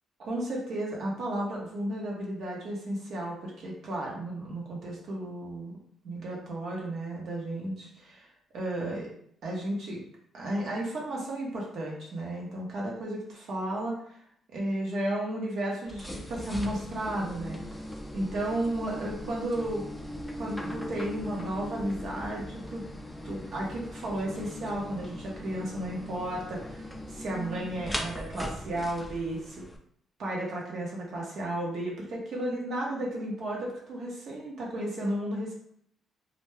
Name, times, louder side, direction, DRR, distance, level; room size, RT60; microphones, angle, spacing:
voice 1, 0.2-5.8 6.0-8.3 8.5-9.1 9.4-10.0 10.3-14.0 14.5-17.8 18.1-19.8 20.3-22.8 23.2-29.6 30.2-35.5, right 1 dB, 65° right, -3 dB, 1.0 m, -33 dB
sound 1, 15.9-29.8, left 1 dB, 5° left, 0.4 m, -39 dB
2.5 x 2.2 x 3.3 m, 0.66 s
cardioid pair, 90°, 0 cm